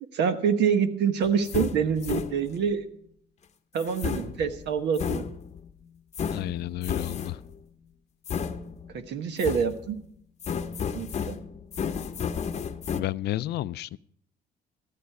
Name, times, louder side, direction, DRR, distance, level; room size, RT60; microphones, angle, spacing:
voice 1, 0.1-2.8 3.7-5.3 8.9-10.0 10.9-11.4, right 7 dB, 85° right, 1.3 m, -26 dB
sound 1, 1.2-2.7 3.8-5.7 6.1-7.6 8.3-9.1 9.4-10.0 10.4-13.0, left 7 dB, 40° left, 0.8 m, -33 dB
voice 2, 6.3-7.4 13.0-14.0, left 15 dB, 75° left, 0.4 m, -31 dB
14.0 x 12.0 x 4.8 m
cardioid pair, 120°, 17 cm